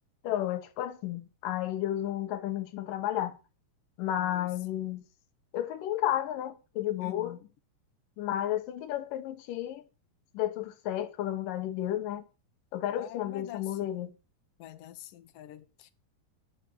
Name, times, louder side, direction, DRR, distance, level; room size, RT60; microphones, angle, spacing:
voice 1, 0.2-3.4 4.0-5.0 5.5-7.4 8.2-9.8 10.3-12.2 12.7-14.1, left 12 dB, 70° left, 2.2 m, -32 dB
voice 2, 4.2-4.5 7.0-7.4 13.0-14.0 14.6-15.9, left 13 dB, 90° left, 1.8 m, -45 dB
11.0 x 6.5 x 9.3 m
omnidirectional pair, 5.1 m